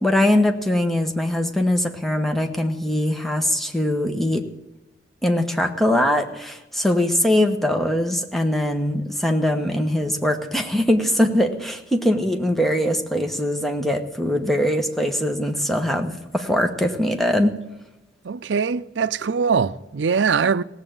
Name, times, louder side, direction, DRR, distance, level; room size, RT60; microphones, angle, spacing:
voice 1, 0.0-4.4 5.2-17.5, left 1 dB, ahead, 1.1 m, -22 dB
voice 2, 18.2-20.6, right 5 dB, 80° right, 0.5 m, -22 dB
17.0 x 8.0 x 8.8 m
head